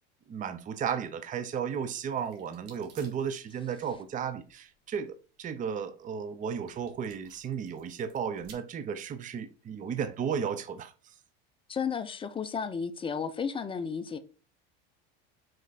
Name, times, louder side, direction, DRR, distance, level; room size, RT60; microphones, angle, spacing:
voice 1, 0.3-11.1, right 7 dB, 25° right, 0.6 m, -34 dB
sound 1, 1.9-8.5, right 7 dB, 65° right, 1.7 m, -58 dB
voice 2, 11.7-14.2, left 6 dB, 15° left, 0.6 m, -33 dB
5.2 x 4.5 x 4.1 m
supercardioid pair, 120°, 30 cm